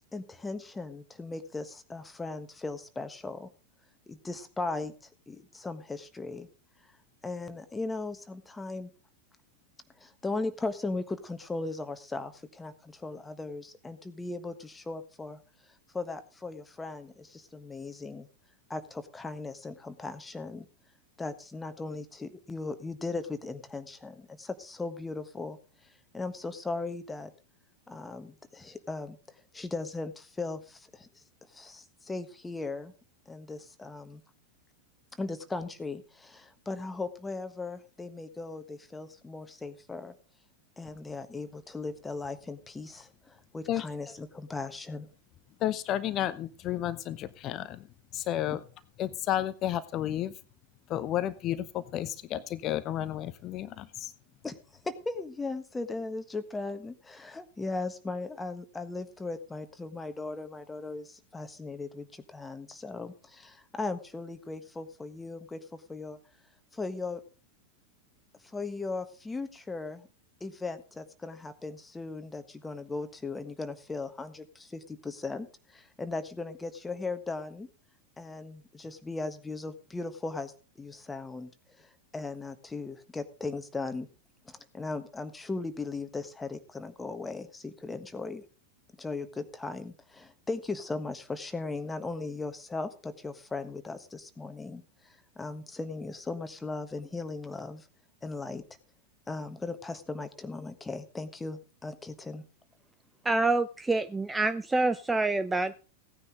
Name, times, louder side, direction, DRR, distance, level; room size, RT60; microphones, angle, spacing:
voice 1, 0.1-3.5 4.1-4.9 5.3-6.5 7.2-8.9 10.0-15.4 15.9-18.3 18.7-20.7 21.2-25.6 26.1-27.3 27.9-31.1 31.5-32.9 33.3-34.2 35.2-40.1 40.8-45.1 48.5-48.6 54.4-54.5 54.8-66.2 66.7-67.2 68.4-70.1 70.4-77.7 78.2-81.5 81.8-84.1 84.4-88.4 89.0-97.9 98.2-98.6 99.3-102.4, left 3 dB, 10° left, 9 dB, 1.5 m, -38 dB
voice 2, 45.6-47.8 48.1-48.6 49.0-50.3 50.9-54.1, left 12 dB, 35° left, 14 dB, 0.9 m, -32 dB
voice 3, 103.3-105.8, right 3 dB, 10° right, 13 dB, 0.5 m, -27 dB
17.0 x 9.7 x 3.9 m, 0.35 s
figure-of-eight pair, 90°, 0 cm